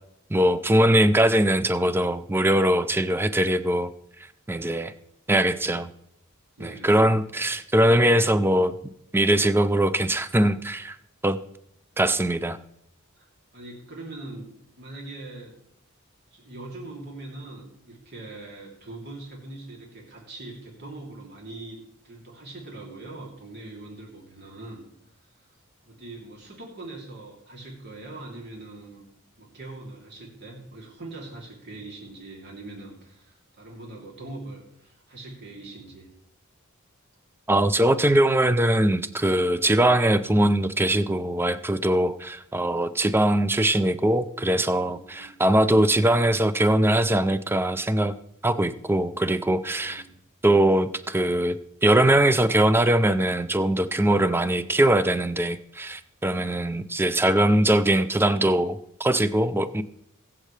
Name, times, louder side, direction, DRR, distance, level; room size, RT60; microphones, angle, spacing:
voice 1, 0.3-3.9 4.5-4.9 5.3-5.9 6.6-8.8 9.1-11.0 11.2-11.4 12.0-12.6 37.5-48.1 48.4-50.0 50.4-59.8, right 1 dB, 10° right, 12 dB, 0.5 m, -21 dB
voice 2, 4.6-4.9 6.6-6.9 7.2-7.4 12.1-12.5 13.2-13.3 13.5-14.5 14.8-15.6 16.3-24.8 25.1-25.5 25.8-29.1 29.4-36.1 44.9-45.4 49.8-50.2, right 2 dB, 50° right, -2 dB, 3.0 m, -42 dB
22.0 x 7.4 x 3.3 m, 0.76 s
head